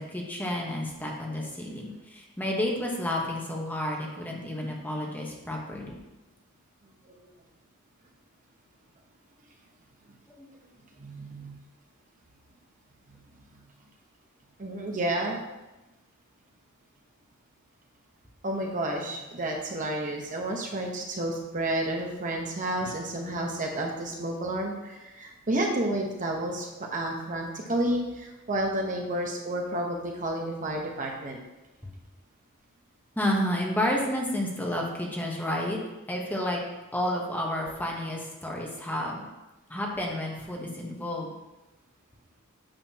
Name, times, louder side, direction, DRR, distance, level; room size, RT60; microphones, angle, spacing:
voice 1, 0.0-6.0 10.3-10.5 31.8-31.9 33.2-35.8 36.1-36.6 36.9-39.2 39.7-41.3, left 1 dB, 10° left, -1 dB, 1.1 m, -31 dB
voice 2, 11.0-11.5 14.6-15.4 18.4-31.4, right 1 dB, 35° right, 1 dB, 0.9 m, -31 dB
8.8 x 6.7 x 2.9 m, 1.0 s
head